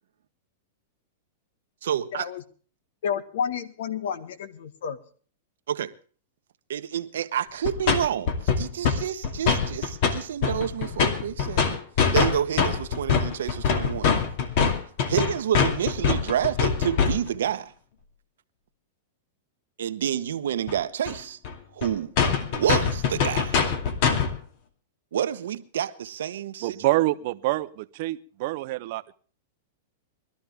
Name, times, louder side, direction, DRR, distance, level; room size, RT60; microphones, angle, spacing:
voice 1, 1.8-2.2 5.7-5.9 6.7-11.8 12.1-14.1 15.1-17.7 19.8-21.4 21.7-22.1 22.5-23.6 25.1-26.8, right 9 dB, 85° right, 1.1 m, -28 dB
voice 2, 3.0-5.0, left 7 dB, 75° left, 1.6 m, -30 dB
sound 1, 7.6-8.0 8.3-9.0 9.2-10.1 10.4-17.4 20.7-20.8 21.1-21.2 21.4-21.5 21.8-21.9 22.2-24.3, left 6 dB, 50° left, 2.4 m, -23 dB
voice 3, 26.6-29.1, right 18 dB, 50° right, 0.8 m, -26 dB
21.5 x 13.0 x 3.6 m
supercardioid pair, 150°, 0 cm